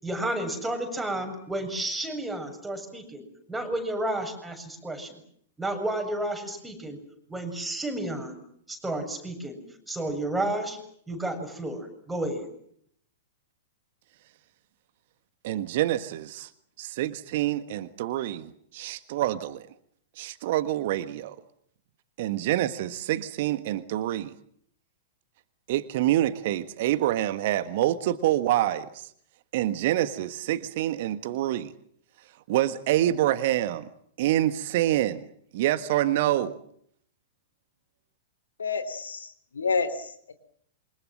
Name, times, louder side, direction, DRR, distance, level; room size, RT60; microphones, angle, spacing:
voice 1, 0.0-5.2 5.6-7.0 7.3-8.4 8.7-9.6 9.9-10.8 11.1-12.5, right 1 dB, 5° right, 3 dB, 7.5 m, -31 dB
voice 2, 15.4-16.5 16.8-19.7 20.2-21.3 22.2-24.3 25.7-29.1 29.5-31.7 32.5-33.9 34.2-35.3 35.5-36.6, right 13 dB, 50° right, 12 dB, 1.5 m, -26 dB
voice 3, 38.6-39.3 39.5-40.3, left 5 dB, 70° left, 13 dB, 3.2 m, -29 dB
28.0 x 25.0 x 7.7 m, 0.67 s
figure-of-eight pair, 100°, 0 cm